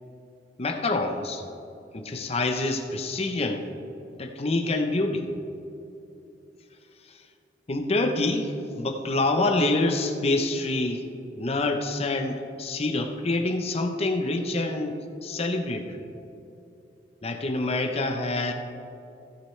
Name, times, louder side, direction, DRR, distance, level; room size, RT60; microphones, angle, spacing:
voice 1, 0.6-1.4 1.9-3.6 4.2-5.3 7.1-7.2 7.7-11.0 11.4-16.0 17.2-18.5, left 2 dB, 35° left, 5 dB, 0.7 m, -26 dB
16.0 x 8.6 x 3.2 m, 2.8 s
head